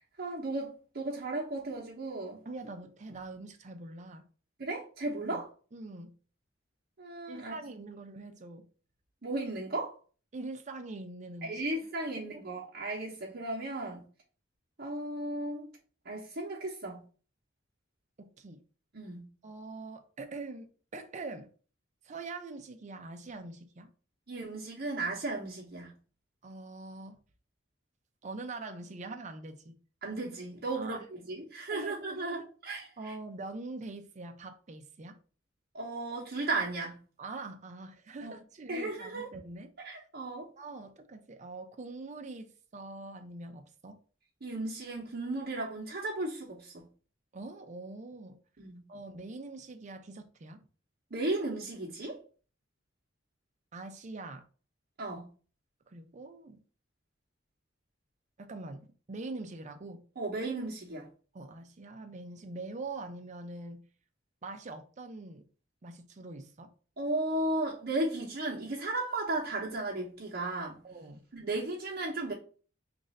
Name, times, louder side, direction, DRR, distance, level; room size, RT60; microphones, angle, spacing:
voice 1, 0.0-2.4 4.6-5.5 7.0-7.6 9.2-10.0 11.4-14.0 14.8-15.7 16.0-17.0 18.9-19.3 24.3-25.9 30.0-32.9 35.7-37.0 38.2-38.3 38.7-39.3 39.8-40.5 44.4-46.9 48.6-48.8 51.1-52.2 55.0-55.3 60.2-61.1 67.0-70.8 71.3-72.3, right 2 dB, 55° right, 0.9 m, -35 dB
voice 2, 2.4-4.3 5.2-5.4 5.7-6.1 7.3-8.7 10.3-11.6 12.1-12.4 18.2-18.6 19.4-21.5 22.0-23.9 26.4-27.2 28.2-29.7 30.8-31.0 31.7-32.5 33.0-35.2 37.2-39.7 40.6-44.0 47.3-48.4 48.9-50.6 53.7-54.5 55.9-56.6 58.4-60.1 61.3-63.9 64.4-65.5 65.8-66.7 70.8-71.2, right 3 dB, 40° right, 0.5 m, -44 dB
3.2 x 2.5 x 3.9 m
head